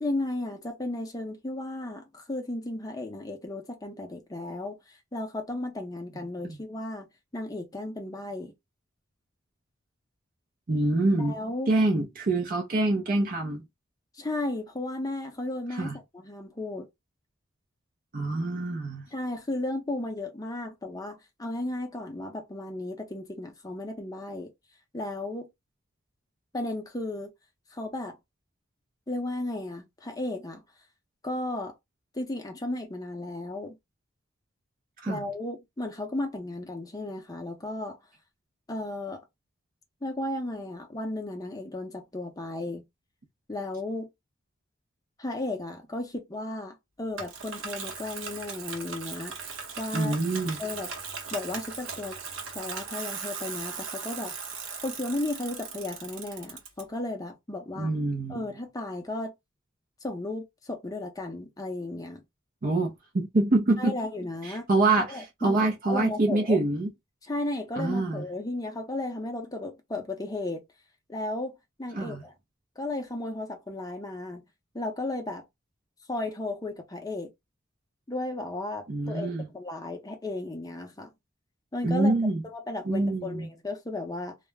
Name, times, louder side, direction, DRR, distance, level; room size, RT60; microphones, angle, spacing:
voice 1, 0.0-4.8 5.1-7.1 7.3-8.5 11.2-11.7 14.1-16.9 19.1-24.5 24.9-25.5 26.5-27.3 27.7-28.2 29.1-30.6 31.2-31.7 32.1-33.8 35.1-38.0 38.7-39.2 40.0-42.8 43.5-44.1 45.2-49.4 49.8-50.2 50.6-50.9 51.3-52.2 52.5-54.3 54.8-57.9 58.3-59.3 60.0-62.2 63.8-64.7 65.0-66.6 67.3-70.6 71.1-72.3 72.8-74.4 74.7-75.4 76.1-77.3 78.1-81.1 81.7-82.1 82.4-84.4, left 2 dB, 20° left, 0.6 m, -34 dB
voice 2, 10.7-11.3 11.7-13.6 15.8-16.0 18.1-19.0 35.0-35.2 49.9-50.6 57.8-58.4 62.6-64.0 64.4-65.1 65.4-66.9 67.8-68.2 72.0-72.2 78.9-79.5 81.8-82.4 82.9-83.5, right 2 dB, 45° right, 0.5 m, -25 dB
Bicycle, 47.2-56.8, right 5 dB, 70° right, 0.9 m, -38 dB
2.3 x 2.0 x 3.2 m
head